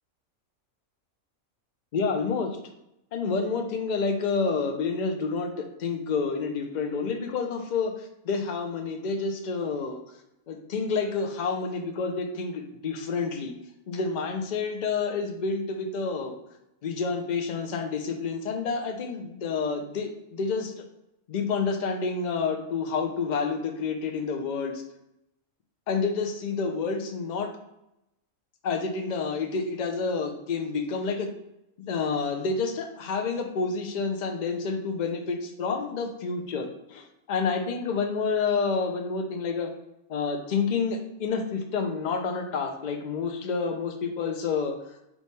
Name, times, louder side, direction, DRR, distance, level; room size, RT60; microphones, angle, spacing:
voice 1, 1.9-2.6 3.1-10.0 10.5-13.5 13.9-16.4 16.8-20.8 21.3-24.8 25.9-27.5 28.6-31.3 31.9-39.7 40.1-44.7, left 4 dB, 55° left, 4 dB, 0.5 m, -29 dB
4.0 x 3.1 x 3.5 m, 0.85 s
omnidirectional pair, 1.4 m